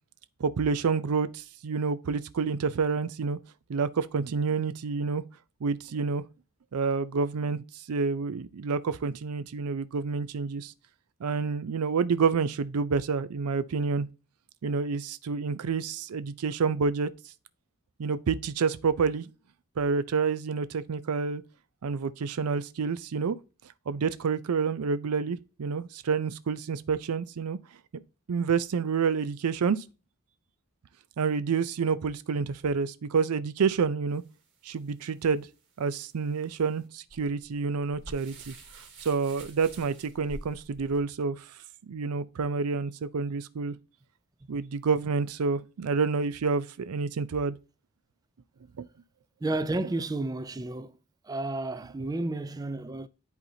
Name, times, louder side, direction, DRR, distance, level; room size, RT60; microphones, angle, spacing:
voice 1, 0.4-3.4 3.7-5.2 5.6-6.2 6.7-10.7 11.2-14.1 14.6-17.1 18.0-19.3 19.8-21.4 21.8-23.4 23.9-27.6 28.3-29.8 31.2-34.2 34.6-35.5 35.8-41.6 41.9-43.8 44.5-47.5 48.8-48.9, right 5 dB, 85° right, 0.5 m, -28 dB
sound 1, 34.1-41.0, right 1 dB, 55° right, 2.6 m, -49 dB
voice 2, 49.4-50.9 51.2-53.1, right 2 dB, 15° right, 0.4 m, -31 dB
10.5 x 4.2 x 2.7 m
head